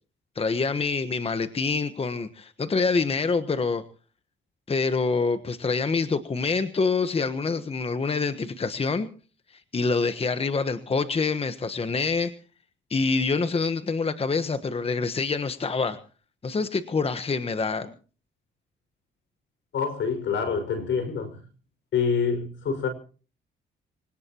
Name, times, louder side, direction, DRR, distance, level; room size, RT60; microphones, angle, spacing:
voice 1, 0.3-3.8 4.7-9.1 9.5-12.3 12.9-16.0 16.4-17.9, left 4 dB, 30° left, 1.3 m, -26 dB
voice 2, 19.7-21.4 21.9-22.9, left 6 dB, 70° left, 5.9 m, -26 dB
25.0 x 18.0 x 3.0 m
cardioid pair, 90°, 20 cm